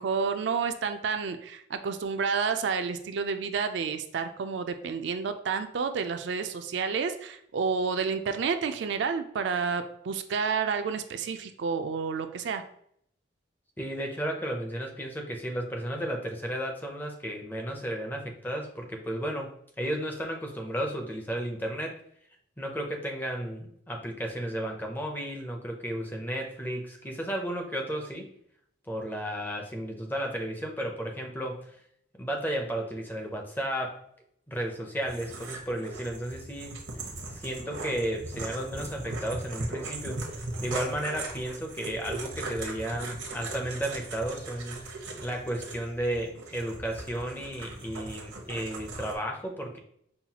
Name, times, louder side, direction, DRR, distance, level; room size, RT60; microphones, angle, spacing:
voice 1, 0.0-12.6, right 5 dB, 65° right, 8 dB, 0.3 m, -30 dB
voice 2, 13.8-22.0 22.6-28.3 28.9-31.8 32.2-34.0 34.5-36.8 37.3-49.8, right 1 dB, 10° left, 2 dB, 0.5 m, -33 dB
sound 1, 35.1-49.2, right 2 dB, 90° right, 0.8 m, -39 dB
5.5 x 2.3 x 2.8 m, 0.68 s
head